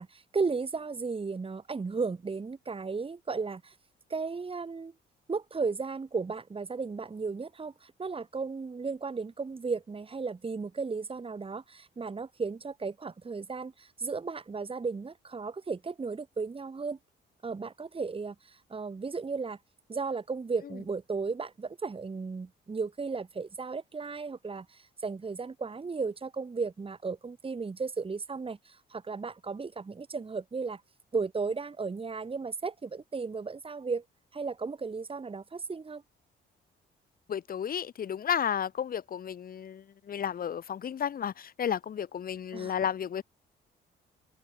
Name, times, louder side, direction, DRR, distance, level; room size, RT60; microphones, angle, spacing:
voice 1, 0.0-3.7 4.1-4.9 5.3-17.0 17.4-19.6 19.9-30.8 31.1-34.0 34.3-36.0 42.5-42.7, right 4 dB, 25° right, 2.2 m, -35 dB
voice 2, 37.3-43.2, left 8 dB, 45° left, 0.9 m, -32 dB
open air
cardioid pair, 90°, 20 cm